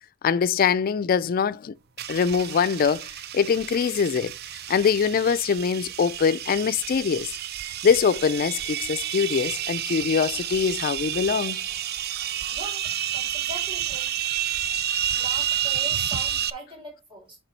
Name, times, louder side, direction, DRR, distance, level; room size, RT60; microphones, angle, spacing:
voice 1, 0.2-1.7 2.1-3.1 3.3-4.3 4.7-7.3 7.8-11.6, left 6 dB, 45° left, 0.3 m, -23 dB
sound 1, 2.0-16.5, right 10 dB, 50° right, 0.4 m, -30 dB
voice 2, 12.5-12.8 13.1-14.1 15.1-17.4, right 1 dB, 25° right, 3.3 m, -41 dB
6.8 x 4.9 x 4.4 m
head